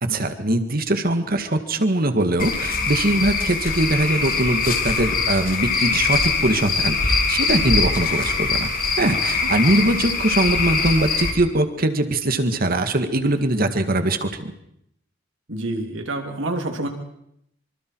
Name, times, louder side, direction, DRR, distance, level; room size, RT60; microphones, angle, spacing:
voice 1, 0.0-8.7 9.0-14.5, right 1 dB, 50° right, 8 dB, 2.0 m, -21 dB
Cricket / Frog, 2.4-11.3, left 4 dB, 50° left, 2.9 m, -22 dB
voice 2, 9.1-9.5 15.5-16.9, right 2 dB, 80° right, 4 dB, 3.4 m, -28 dB
25.5 x 25.0 x 4.8 m, 0.74 s
head